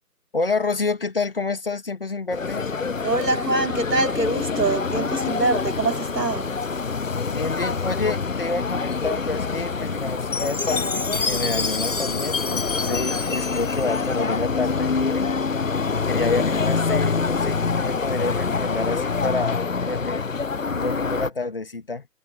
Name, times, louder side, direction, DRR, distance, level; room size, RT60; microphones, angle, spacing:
voice 1, 0.3-2.7 7.3-20.3 20.6-22.1, left 3 dB, 35° left, 2.0 m, -29 dB
sound 1, 2.3-21.3, left 5 dB, 55° left, 0.6 m, -26 dB
voice 2, 3.0-6.5, right 2 dB, 80° right, 3.3 m, -24 dB
Chime, 10.3-14.7, left 4 dB, 90° left, 1.3 m, -29 dB
figure-of-eight pair, 160°, 49 cm